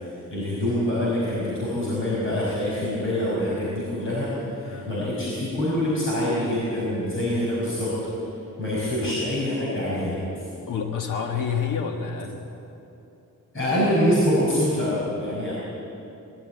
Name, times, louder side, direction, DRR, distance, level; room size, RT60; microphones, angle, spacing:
voice 1, 0.3-4.3 4.6-7.9 8.6-10.2 13.5-15.5, left 1 dB, 35° left, -8 dB, 5.6 m, -25 dB
voice 2, 4.6-4.9 9.0-9.2 10.7-12.5, left 7 dB, 65° left, 2 dB, 1.6 m, -29 dB
21.5 x 13.5 x 9.1 m, 2.8 s
wide cardioid pair, 175°, 33 cm